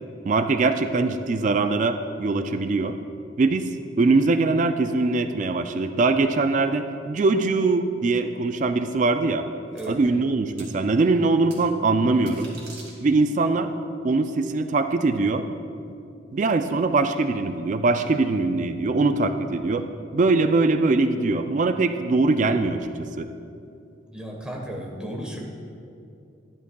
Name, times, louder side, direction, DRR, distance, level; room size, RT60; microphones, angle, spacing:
voice 1, 0.3-2.9 3.4-3.7 4.0-9.5 9.9-12.5 13.0-13.7 14.0-15.5 16.3-19.9 20.1-23.3, right 3 dB, 40° right, 8 dB, 0.3 m, -22 dB
sound 1, 9.8-9.9 10.6-10.7 11.5-11.6 12.1-13.3, right 3 dB, 90° right, 2.2 m, -44 dB
voice 2, 24.1-25.4, equal, 5° right, -2 dB, 1.1 m, -34 dB
11.5 x 11.0 x 2.3 m, 2.6 s
head